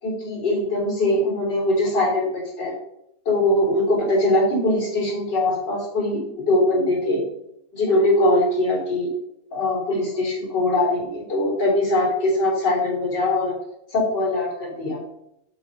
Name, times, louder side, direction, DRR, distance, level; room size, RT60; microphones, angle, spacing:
voice 1, 0.0-2.7 3.3-7.2 7.7-9.1 9.5-13.5 13.9-15.0, left 1 dB, 85° left, -2 dB, 4.0 m, -22 dB
7.3 x 7.2 x 5.3 m, 0.80 s
omnidirectional pair, 1.8 m